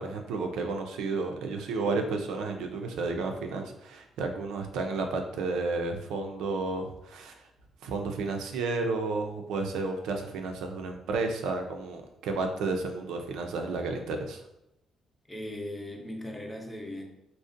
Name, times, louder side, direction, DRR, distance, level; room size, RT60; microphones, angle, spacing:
voice 1, 0.0-7.5 7.8-14.4, right 3 dB, 90° right, 4 dB, 0.3 m, -32 dB
voice 2, 15.3-17.0, left 1 dB, 15° left, 2 dB, 0.5 m, -38 dB
2.5 x 2.0 x 2.5 m, 0.83 s
cardioid pair, 90°, 0 cm